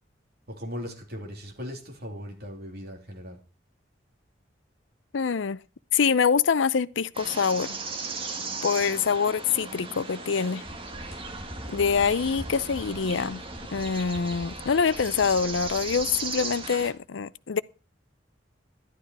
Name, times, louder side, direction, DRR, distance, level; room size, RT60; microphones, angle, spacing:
voice 1, 0.5-3.4, equal, 55° right, 3.3 m, -38 dB
voice 2, 5.1-5.6 5.9-7.8 8.6-10.6 11.7-13.4 13.7-17.6, left 6 dB, 80° left, 0.5 m, -25 dB
sound 1, 7.1-16.9, right 4 dB, 30° right, 1.8 m, -37 dB
sound 2, 10.6-17.0, equal, 15° left, 7.2 m, -44 dB
11.5 x 11.5 x 4.7 m
head